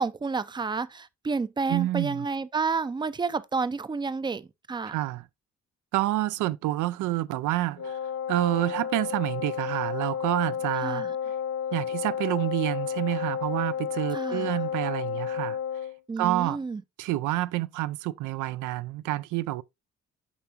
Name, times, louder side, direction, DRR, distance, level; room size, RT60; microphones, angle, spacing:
voice 1, 0.0-5.0 10.8-11.1 14.1-14.5 16.1-16.8, right 4 dB, 15° right, 0.4 m, -30 dB
voice 2, 1.7-2.3 4.9-5.3 5.9-8.0 8.3-11.1 11.7-15.6 16.2-16.6 17.0-19.6, right 16 dB, 85° right, 0.5 m, -28 dB
Wind instrument woodwind instrument, 7.8-16.0, left 8 dB, 65° left, 1.1 m, -31 dB
7.0 x 4.9 x 2.8 m
cardioid pair, 90°, 30 cm